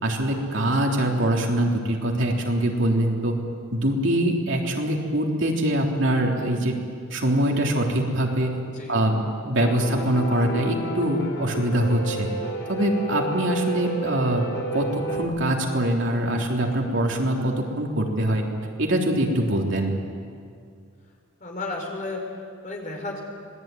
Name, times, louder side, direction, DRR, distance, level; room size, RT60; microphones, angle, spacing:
voice 1, 0.0-3.4 3.7-6.8 7.1-8.6 8.9-12.3 12.7-14.5 14.7-18.5 18.8-19.9, right 1 dB, 65° right, 0 dB, 3.5 m, -23 dB
voice 2, 8.7-9.0 21.4-23.2, left 2 dB, 40° left, 1 dB, 5.0 m, -33 dB
Piano, 9.6-15.2, right 1 dB, 60° left, 4.5 m, -31 dB
26.0 x 20.0 x 9.3 m, 2.3 s
head